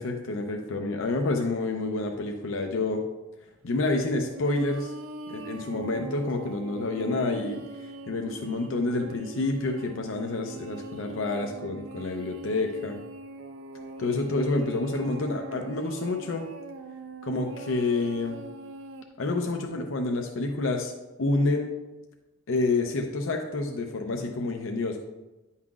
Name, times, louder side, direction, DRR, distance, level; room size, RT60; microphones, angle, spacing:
voice 1, 0.0-3.0 3.6-4.9 5.3-13.0 14.0-16.4 17.2-18.4 19.2-20.9 21.2-21.7 22.5-25.0, left 2 dB, 90° left, 3 dB, 0.6 m, -28 dB
sound 1, 4.3-19.0, right 2 dB, 75° right, 0.5 m, -42 dB
9.5 x 5.6 x 2.4 m, 1.1 s
head